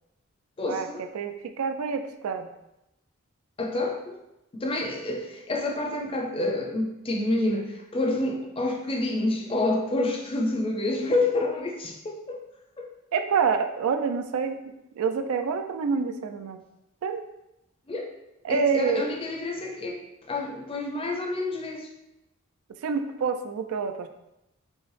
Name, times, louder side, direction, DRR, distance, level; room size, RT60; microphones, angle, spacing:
voice 1, 0.6-1.1 3.6-4.2 4.5-12.4 12.8-12.9 17.9-18.1 18.5-21.9, left 2 dB, 25° left, 1 dB, 0.5 m, -28 dB
voice 2, 1.1-2.5 13.1-14.6 15.0-16.6 17.0-17.2 18.4-19.1 22.8-24.1, right 5 dB, 85° right, 8 dB, 0.3 m, -27 dB
5.4 x 2.0 x 3.2 m, 0.89 s
head